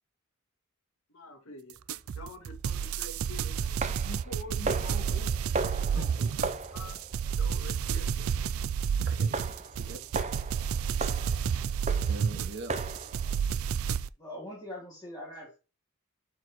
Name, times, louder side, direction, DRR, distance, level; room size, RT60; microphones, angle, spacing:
voice 1, 1.1-1.8 2.1-5.3 5.7-6.1 6.7-7.0 7.4-8.3, left 2 dB, 70° left, 2.0 m, -46 dB
sound 1, 1.8-2.7 3.8-13.4, right 3 dB, 30° right, 0.6 m, -38 dB
sound 2, 1.9-14.1, right 7 dB, 75° right, 0.4 m, -30 dB
voice 2, 5.9-6.5 9.0-10.0 12.0-12.7, right 2 dB, 55° right, 1.8 m, -42 dB
voice 3, 14.2-15.6, left 1 dB, 20° left, 2.8 m, -42 dB
11.5 x 4.7 x 3.0 m
head